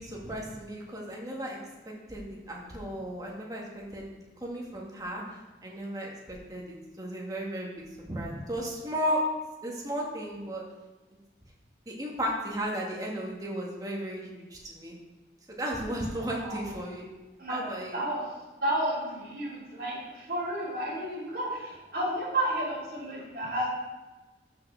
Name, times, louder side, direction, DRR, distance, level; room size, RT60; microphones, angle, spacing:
voice 1, 0.0-1.6 2.1-4.0 4.4-5.2 5.6-7.7 8.1-9.2 9.6-10.6 11.9-15.0 15.5-17.0 17.5-18.0, right 1 dB, 20° right, -2 dB, 1.7 m, -34 dB
voice 2, 17.4-18.2 18.6-23.7, right 1 dB, 55° right, -9 dB, 2.9 m, -32 dB
6.4 x 5.6 x 6.7 m, 1.2 s
head